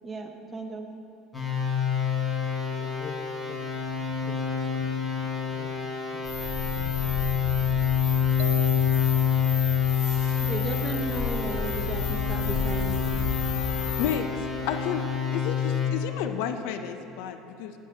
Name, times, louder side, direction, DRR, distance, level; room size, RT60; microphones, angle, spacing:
voice 1, 0.0-0.9 10.4-13.0, right 3 dB, 25° right, 4 dB, 0.8 m, -35 dB
sound 1, 1.3-15.9, left 7 dB, 10° left, 1.8 m, -27 dB
voice 2, 2.8-3.2 3.5-3.6 4.3-4.9 5.2-6.2 14.0-14.1, left 5 dB, 35° left, 3 dB, 1.0 m, -45 dB
sound 2, 6.2-14.2, left 5 dB, 65° left, 2.3 m, -32 dB
sound 3, 8.4-9.6, right 5 dB, 85° right, 0.5 m, -39 dB
voice 3, 14.0-14.3 14.6-15.0 15.3-17.7, left 9 dB, 80° left, 8 dB, 0.5 m, -31 dB
16.5 x 7.2 x 2.8 m, 3.0 s
supercardioid pair, 115°, 0 cm